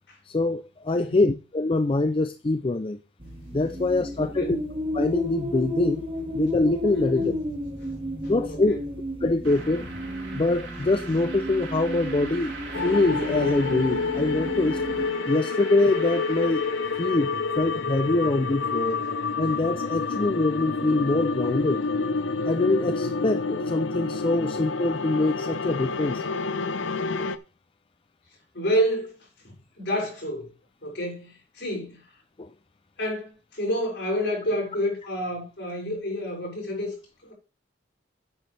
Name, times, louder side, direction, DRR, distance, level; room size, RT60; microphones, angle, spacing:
voice 1, 0.3-3.0 3.5-4.6 4.9-6.0 6.3-7.3 8.3-8.8 9.2-9.8 10.3-12.5 12.8-14.8 15.3-16.7 17.0-19.0 19.4-21.8 22.5-26.2 32.4-32.5, left 2 dB, 30° left, 0.4 m, -24 dB
voice 2, 0.9-1.2 4.1-4.6 6.9-7.4 8.5-8.8 28.5-30.5 30.8-32.0 33.0-36.9 37.2-37.3, equal, 60° left, 6.6 m, -29 dB
sound 1, 3.2-15.1, left 1 dB, 25° right, 2.0 m, -32 dB
sound 2, 9.4-17.5, right 3 dB, 90° right, 4.0 m, -42 dB
sound 3, 12.7-27.4, left 4 dB, 85° left, 0.7 m, -28 dB
9.8 x 9.1 x 3.3 m
head